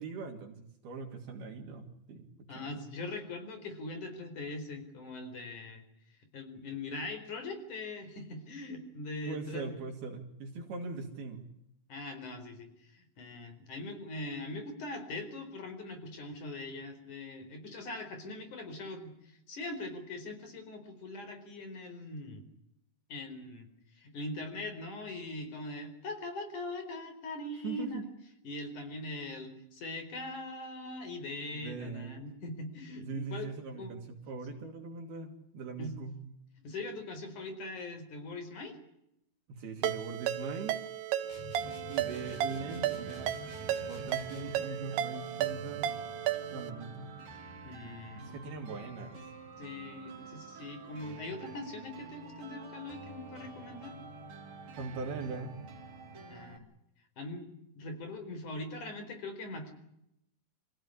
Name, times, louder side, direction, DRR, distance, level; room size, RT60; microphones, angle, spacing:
voice 1, 0.0-2.3 2.6-2.8 9.3-11.5 27.6-28.0 31.5-32.2 33.1-36.2 39.5-40.8 41.9-43.3 43.8-45.9 46.5-47.1 48.2-49.2 54.8-55.6, right 4 dB, 70° right, 2 dB, 4.5 m, -41 dB
voice 2, 2.5-5.8 6.2-9.7 11.9-22.4 23.1-28.1 28.4-33.5 33.8-33.9 35.8-36.0 36.6-38.8 47.6-48.2 49.6-54.0 56.3-56.6 57.2-57.5 57.8-59.7, left 2 dB, 50° left, 8 dB, 5.6 m, -41 dB
Ringtone, 39.8-46.7, right 11 dB, 85° right, 3.6 m, -34 dB
sound 1, 41.3-44.7, left 3 dB, 70° left, 4.8 m, -48 dB
sound 2, 41.6-56.6, right 4 dB, 45° right, 4.4 m, -49 dB
27.0 x 16.0 x 9.9 m, 0.79 s
omnidirectional pair, 4.6 m